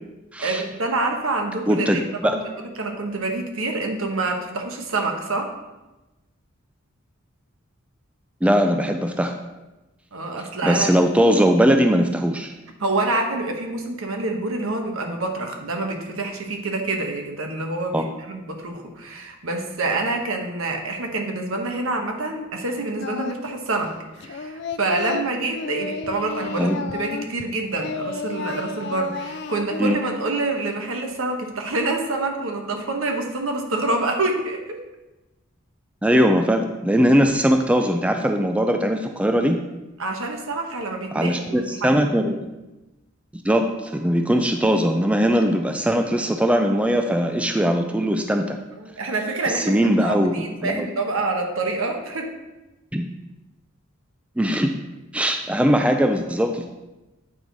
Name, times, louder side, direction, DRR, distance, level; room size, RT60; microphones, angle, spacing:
voice 1, 0.4-5.5 10.1-11.0 12.8-34.8 40.0-42.0 48.8-52.3, right 2 dB, 85° right, 3 dB, 1.2 m, -27 dB
voice 2, 1.7-2.4 8.4-9.3 10.6-12.5 17.9-18.1 26.6-26.8 29.8-30.0 36.0-39.6 41.1-42.5 43.4-48.6 49.5-50.9 52.9-53.0 54.4-54.7 55.1-56.7, equal, 5° right, 5 dB, 0.4 m, -20 dB
Singing, 23.0-23.6 23.8-27.5 27.8-29.8, left 4 dB, 55° left, 0.4 m, -32 dB
8.8 x 4.7 x 4.0 m, 1.0 s
head